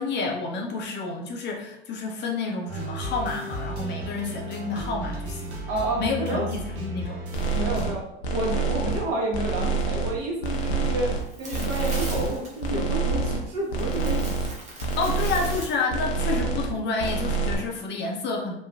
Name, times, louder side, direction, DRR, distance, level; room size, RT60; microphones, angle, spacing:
voice 1, 0.0-5.6 6.0-7.1 15.0-18.6, left 4 dB, 35° left, 1 dB, 0.6 m, -29 dB
sound 1, 2.7-7.9, equal, 90° right, 0.8 m, -34 dB
voice 2, 5.7-6.5 7.5-14.2, right 1 dB, 45° right, -2 dB, 1.1 m, -30 dB
sound 2, 7.3-7.9 8.2-9.0 9.3-10.1 10.4-11.2 11.5-12.3 12.6-13.4 13.7-14.5 14.8-15.6 15.9-16.7 17.0-17.6, right 4 dB, 80° left, 0.6 m, -27 dB
sound 3, 10.4-16.3, right 2 dB, 20° right, 0.9 m, -42 dB
3.0 x 2.2 x 2.3 m, 0.79 s
hypercardioid pair, 85°, 32 cm